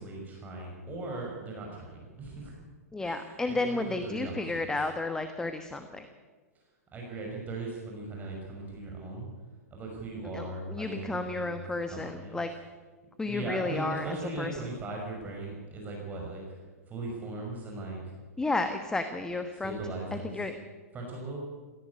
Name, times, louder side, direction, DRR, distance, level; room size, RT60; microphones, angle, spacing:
voice 1, 0.0-2.6 3.0-4.7 6.9-9.3 9.7-12.4 13.3-16.4 16.9-18.1 19.6-20.4 20.9-21.4, right 2 dB, 20° right, -1 dB, 5.8 m, -39 dB
voice 2, 2.9-6.1 10.3-12.5 13.2-14.1 14.4-14.5 18.4-19.8 20.1-20.6, left 2 dB, 5° left, 8 dB, 1.2 m, -32 dB
18.0 x 15.0 x 9.6 m, 1.4 s
figure-of-eight pair, 110°, 8 cm